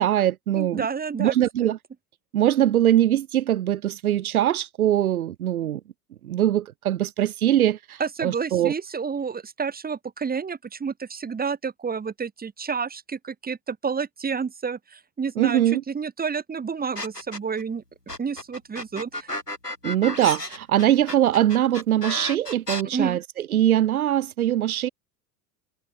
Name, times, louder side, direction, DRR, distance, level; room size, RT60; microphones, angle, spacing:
voice 1, 0.0-0.8 1.2-1.8 2.3-5.8 6.2-8.7 15.4-15.8 19.8-23.2 23.5-24.9, right 12 dB, 65° right, 2.3 m, -22 dB
voice 2, 0.5-1.3 1.6-1.7 8.0-17.8 18.2-19.3 22.9-23.2, right 6 dB, 20° right, 6.1 m, -30 dB
sound 1, 16.9-17.6 18.1-22.8, left 1 dB, 90° left, 5.2 m, -32 dB
figure-of-eight pair, 80°, 46 cm